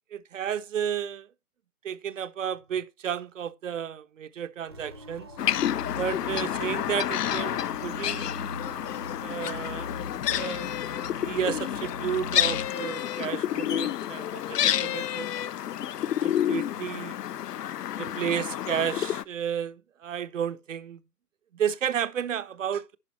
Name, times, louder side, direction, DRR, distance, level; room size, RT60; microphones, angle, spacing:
voice 1, 0.1-1.3 1.8-5.3 6.0-8.3 9.2-9.9 10.3-10.9 11.2-15.3 16.2-17.1 18.0-21.0 21.5-23.0, right 9 dB, 55° right, 0.7 m, -32 dB
sound 1, 4.7-12.7, left 1 dB, 20° right, 0.5 m, -42 dB
sound 2, 5.4-19.2, left 11 dB, 85° left, 0.7 m, -29 dB
11.0 x 4.8 x 4.1 m
hypercardioid pair, 170°, 46 cm